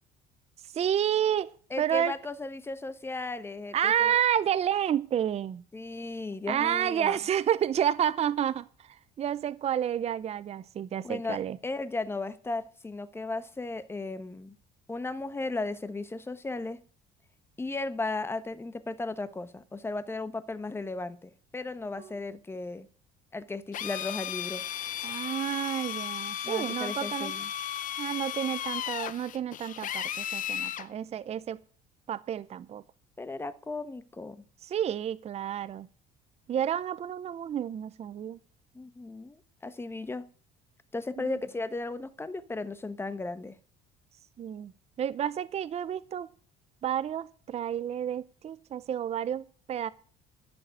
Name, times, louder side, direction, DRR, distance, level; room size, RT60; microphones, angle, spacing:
voice 1, 0.7-1.5 1.8-2.1 3.7-5.6 6.5-11.6 22.0-22.1 25.0-27.3 28.0-31.6 32.1-32.8 34.6-35.9 36.5-38.4 41.2-41.4 44.4-44.7 45.0-46.3 46.8-49.9, right 10 dB, 35° right, 0.6 m, -30 dB
voice 2, 1.7-4.1 5.7-7.2 11.0-14.5 14.9-16.8 17.6-22.9 23.3-24.6 25.0-25.1 26.4-27.5 33.2-34.4 38.7-40.3 40.9-43.6, left 3 dB, 15° left, 1.1 m, -35 dB
Drill, 23.7-30.9, left 10 dB, 45° left, 0.8 m, -35 dB
11.5 x 7.8 x 9.3 m
cardioid pair, 125°, 19 cm